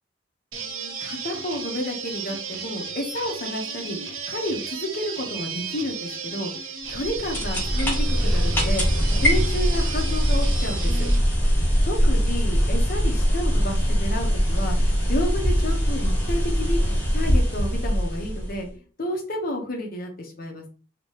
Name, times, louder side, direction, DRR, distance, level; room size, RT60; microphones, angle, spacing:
sound 1, 0.5-11.2, right 6 dB, 85° right, 0.7 m, -34 dB
voice 1, 0.6-11.1 11.8-16.8 17.1-18.7 19.0-20.7, left 1 dB, 45° left, 2 dB, 0.9 m, -31 dB
sound 2, 6.9-18.7, equal, 10° left, 1.0 m, -22 dB
2.9 x 2.9 x 3.1 m, 0.38 s
head